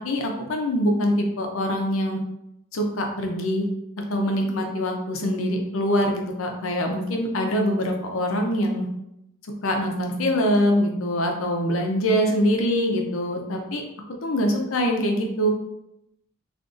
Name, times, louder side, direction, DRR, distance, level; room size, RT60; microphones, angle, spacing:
voice 1, 0.0-2.2 2.7-3.7 4.1-8.9 9.6-13.8 14.2-15.5, equal, 75° left, 2 dB, 0.6 m, -24 dB
2.5 x 2.5 x 3.7 m, 0.84 s
head